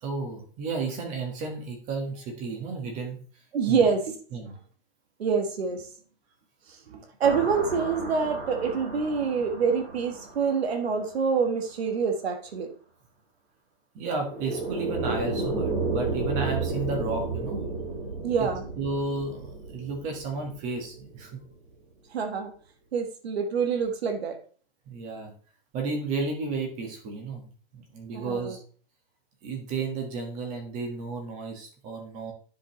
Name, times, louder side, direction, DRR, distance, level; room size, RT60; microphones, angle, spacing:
voice 1, 0.0-3.2 3.7-3.9 4.3-4.5 13.9-17.6 18.4-18.5 18.8-21.4 24.9-25.3 25.7-27.5 27.7-28.6 29.4-32.3, right 3 dB, 25° right, 3 dB, 1.6 m, -33 dB
voice 2, 3.5-4.1 5.2-5.9 6.7-12.7 18.2-18.6 22.1-22.5 22.9-24.4 28.1-28.5, right 5 dB, 90° right, 5 dB, 1.5 m, -26 dB
sound 1, 7.2-11.1 14.1-21.3, right 3 dB, 45° right, 4.1 m, -33 dB
9.9 x 5.4 x 3.1 m, 0.43 s
hypercardioid pair, 165°, 30 cm